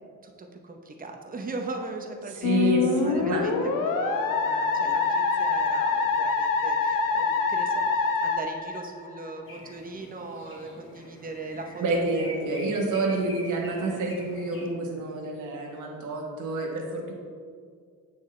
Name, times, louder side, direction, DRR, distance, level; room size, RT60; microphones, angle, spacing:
voice 1, 0.2-2.7 3.0-3.5 3.8-12.0 13.1-13.2, right 3 dB, 25° right, 3 dB, 0.8 m, -39 dB
voice 2, 2.3-3.4 11.8-17.1, right 2 dB, 65° right, -2 dB, 1.2 m, -28 dB
Musical instrument, 2.4-9.3, left 4 dB, 80° left, 0.8 m, -25 dB
sound 1, 9.4-14.7, equal, 40° left, 1.5 m, -46 dB
8.2 x 6.2 x 3.2 m, 2.1 s
cardioid pair, 145°, 32 cm